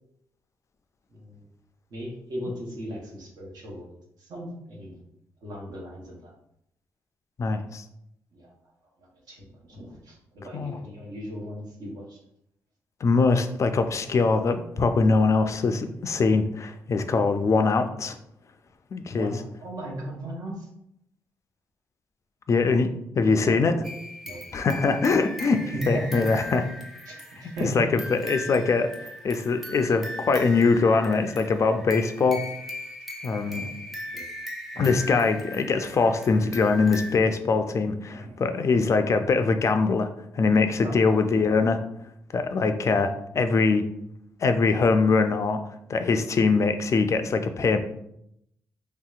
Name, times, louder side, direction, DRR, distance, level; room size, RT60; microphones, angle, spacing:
voice 1, 1.1-1.5 1.9-3.9 4.2-5.0 5.4-6.3 8.3-8.5 9.0-12.2 19.1-20.7 23.3-23.9 24.2-24.4 25.7-26.3 27.0-27.9 33.3-34.3 34.7-35.0 38.1-38.4 40.8-41.0, equal, 70° right, -2 dB, 1.0 m, -37 dB
voice 2, 7.4-7.8 10.5-10.8 13.0-18.2 18.9-19.3 22.5-23.8 24.5-26.6 27.7-28.9 29.2-32.4 33.2-33.6 34.8-41.8 42.3-43.9 44.4-45.6 45.9-47.8, left 4 dB, 45° left, 8 dB, 0.3 m, -23 dB
sound 1, 23.8-37.2, left 1 dB, ahead, 0.6 m, -39 dB
3.3 x 2.8 x 2.4 m, 0.77 s
supercardioid pair, 55°, 7 cm